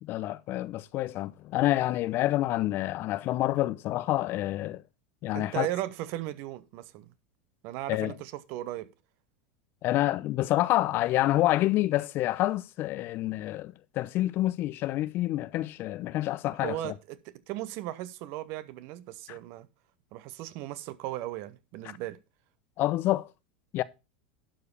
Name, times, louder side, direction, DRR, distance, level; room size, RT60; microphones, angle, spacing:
voice 1, 0.0-4.8 5.2-5.7 7.9-8.1 9.8-16.9 19.3-19.4 22.8-23.3 23.7-23.8, left 15 dB, 45° left, 0.7 m, -28 dB
voice 2, 5.3-7.1 7.6-8.9 16.6-19.7 20.1-22.2, right 15 dB, 55° right, 1.0 m, -37 dB
11.5 x 4.9 x 5.4 m
hypercardioid pair, 90°, 5 cm